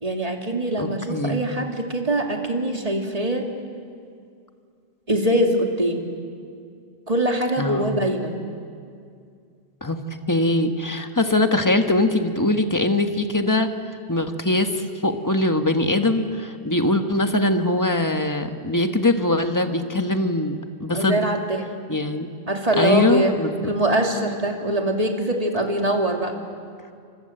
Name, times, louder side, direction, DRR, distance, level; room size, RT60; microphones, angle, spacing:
voice 1, 0.0-3.5 5.1-6.1 7.1-8.3 20.9-21.7 22.5-23.4 23.6-26.4, right 1 dB, 35° right, 2 dB, 2.7 m, -23 dB
voice 2, 0.8-1.4 7.6-7.9 9.8-13.7 14.1-21.2 21.9-22.3 22.8-23.5, left 2 dB, 20° left, 6 dB, 1.5 m, -22 dB
29.0 x 25.5 x 7.9 m, 2.3 s
omnidirectional pair, 1.1 m